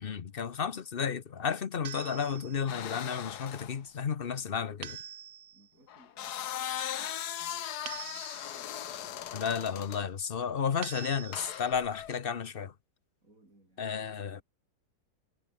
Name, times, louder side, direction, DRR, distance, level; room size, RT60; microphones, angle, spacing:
voice 1, 0.0-5.0 9.3-12.7 13.8-14.4, left 7 dB, 40° left, 0.8 m, -33 dB
sound 1, 1.8-2.8 4.8-5.7 7.9-8.8 10.8-11.7, right 9 dB, 65° right, 1.6 m, -45 dB
sound 2, 2.7-3.8 5.9-10.1 11.3-12.1, left 10 dB, 65° left, 1.4 m, -38 dB
voice 2, 5.5-9.4 13.2-14.4, right 2 dB, 45° right, 6.6 m, -65 dB
omnidirectional pair, 1.9 m